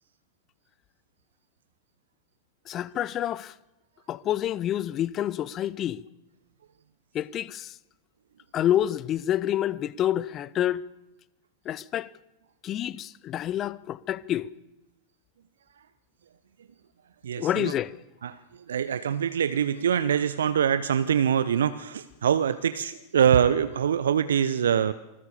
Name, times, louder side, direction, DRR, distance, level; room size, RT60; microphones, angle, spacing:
voice 1, 2.7-3.5 4.1-6.0 7.1-7.7 8.5-10.8 11.7-12.1 12.6-14.5 17.4-17.9, left 11 dB, 30° left, 0.8 m, -28 dB
voice 2, 17.2-17.7 18.2-18.4 18.7-24.9, right 8 dB, 65° right, 0.9 m, -24 dB
27.5 x 20.5 x 7.0 m
figure-of-eight pair, 90°, 0 cm